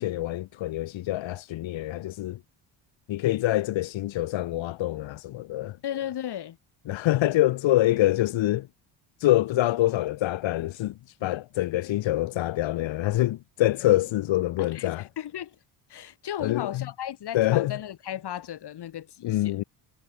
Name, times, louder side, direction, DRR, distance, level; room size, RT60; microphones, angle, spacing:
voice 1, 0.0-2.4 3.1-5.8 6.9-8.7 9.2-10.9 11.2-15.0 16.4-16.8 17.3-17.7 19.2-19.6, left 15 dB, 80° left, 2.8 m, -25 dB
voice 2, 5.8-6.6 14.6-15.6 15.9-19.6, left 11 dB, 60° left, 4.3 m, -35 dB
cardioid pair, 110°, 45 cm